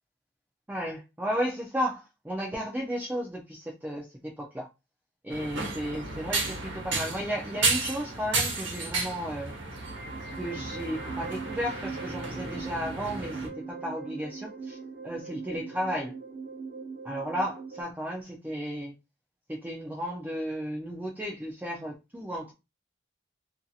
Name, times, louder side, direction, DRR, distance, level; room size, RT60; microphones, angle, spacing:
voice 1, 0.7-4.7 5.2-9.5 10.4-14.8 15.0-16.1 17.0-18.9 19.5-22.5, equal, 10° right, 0.4 m, -34 dB
sound 1, 5.3-13.5, right 3 dB, 80° right, 1.0 m, -33 dB
sound 2, 9.8-17.8, right 4 dB, 55° right, 0.7 m, -40 dB
2.7 x 2.6 x 2.3 m
head